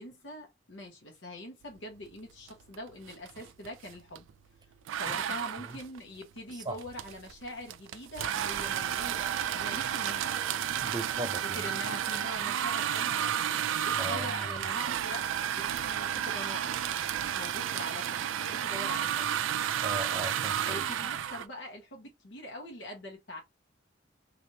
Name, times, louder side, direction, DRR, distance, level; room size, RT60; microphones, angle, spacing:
voice 1, 0.0-4.3 5.0-10.7 11.5-19.3 20.6-23.4, left 1 dB, 75° left, 0.9 m, -43 dB
sound 1, 2.5-2.8 3.0-4.3 4.9-21.5, right 10 dB, 80° right, 0.3 m, -32 dB
voice 2, 10.8-11.6 14.0-14.6 19.8-20.8, right 1 dB, 20° right, 0.5 m, -38 dB
3.1 x 2.5 x 2.7 m
head